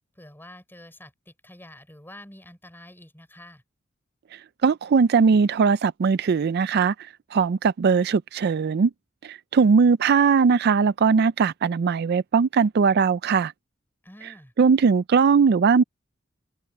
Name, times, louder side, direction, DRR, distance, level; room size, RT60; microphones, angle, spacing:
voice 1, 0.2-3.6 14.0-14.5, left 1 dB, 10° left, 5.5 m, -47 dB
voice 2, 4.6-6.9 7.3-8.9 9.2-13.5 14.6-15.8, right 5 dB, 55° right, 0.4 m, -19 dB
open air
head